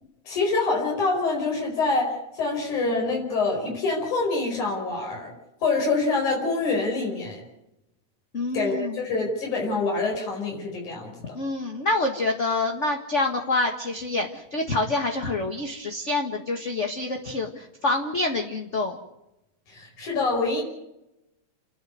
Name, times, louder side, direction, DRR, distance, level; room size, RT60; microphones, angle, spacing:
voice 1, 0.3-5.3 5.6-7.4 8.5-11.1 19.7-20.6, left 3 dB, 85° left, -1 dB, 6.3 m, -26 dB
voice 2, 8.3-9.0 11.3-19.0, left 2 dB, 30° left, 4 dB, 1.4 m, -27 dB
29.5 x 11.5 x 9.4 m, 0.89 s
omnidirectional pair, 3.4 m